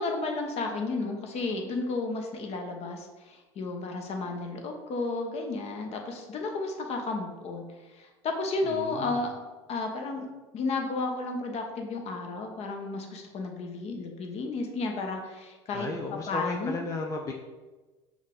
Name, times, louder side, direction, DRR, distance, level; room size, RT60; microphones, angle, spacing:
voice 1, 0.0-7.6 7.9-9.3 9.7-10.3 10.5-15.9 16.3-16.8, left 3 dB, 45° left, 3 dB, 0.8 m, -32 dB
voice 2, 8.6-9.3 15.7-17.3, left 3 dB, 20° left, 1 dB, 0.4 m, -35 dB
5.4 x 2.4 x 3.6 m, 1.2 s
hypercardioid pair, 85°, 15 cm